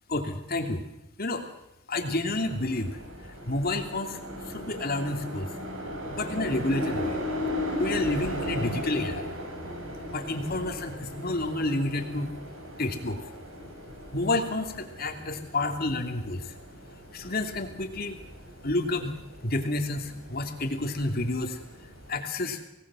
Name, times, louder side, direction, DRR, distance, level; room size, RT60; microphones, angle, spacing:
voice 1, 0.1-0.8 1.2-1.4 1.9-3.0 3.5-4.2 4.5-5.5 6.1-7.1 7.8-9.2 10.1-12.3 12.8-13.2 14.1-16.4 17.1-18.2 18.6-19.1 19.4-21.6 22.1-22.6, left 2 dB, 45° left, 4 dB, 3.0 m, -29 dB
sound 1, 2.3-22.2, left 1 dB, 80° right, 6.0 m, -37 dB
25.5 x 19.0 x 6.4 m, 0.90 s
head